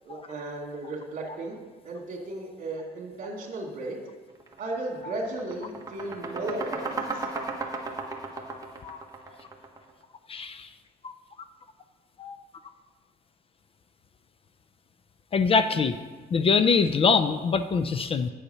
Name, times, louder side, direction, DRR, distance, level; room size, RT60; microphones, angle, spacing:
voice 1, 0.0-1.6 1.8-4.0 4.6-7.3, right 2 dB, 50° right, 0 dB, 2.4 m, -35 dB
sound 1, 4.4-4.6 4.9-9.9, right 3 dB, 20° right, 1.4 m, -35 dB
voice 2, 10.3-10.7 11.0-11.1 12.2-12.4 15.3-16.0 16.3-18.3, left 5 dB, 35° left, 11 dB, 0.5 m, -23 dB
8.6 x 6.8 x 5.6 m, 1.3 s
cardioid pair, 110°, 17 cm